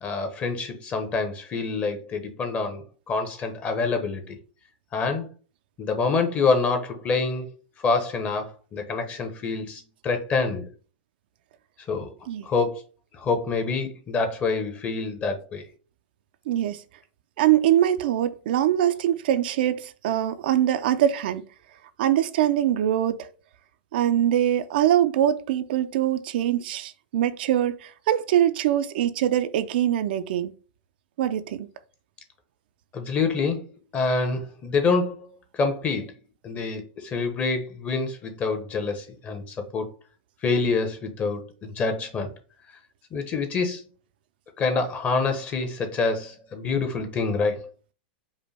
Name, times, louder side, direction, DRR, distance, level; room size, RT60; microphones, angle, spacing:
voice 1, 0.0-4.4 4.9-5.3 5.8-7.5 7.8-10.7 11.9-12.2 12.4-12.8 13.1-15.7 32.9-33.6 33.9-35.3 35.5-36.1 36.4-39.9 40.4-42.3 43.1-43.8 44.6-47.7, left 4 dB, 25° left, 0.9 m, -26 dB
voice 2, 16.5-16.8 17.4-21.4 22.0-23.3 23.9-30.5 31.2-31.7, right 11 dB, 65° right, 0.4 m, -23 dB
5.2 x 2.2 x 3.3 m
hypercardioid pair, 120°, 6 cm